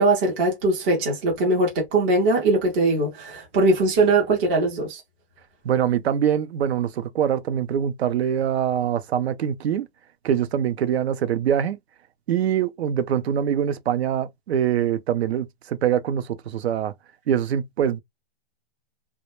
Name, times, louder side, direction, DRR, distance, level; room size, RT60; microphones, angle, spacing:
voice 1, 0.0-5.0, right 2 dB, 10° right, 0.3 m, -21 dB
voice 2, 5.6-9.9 10.2-11.8 12.3-16.9 17.3-18.0, right 9 dB, 80° right, 0.5 m, -24 dB
2.2 x 2.1 x 2.9 m
hypercardioid pair, 150°, 32 cm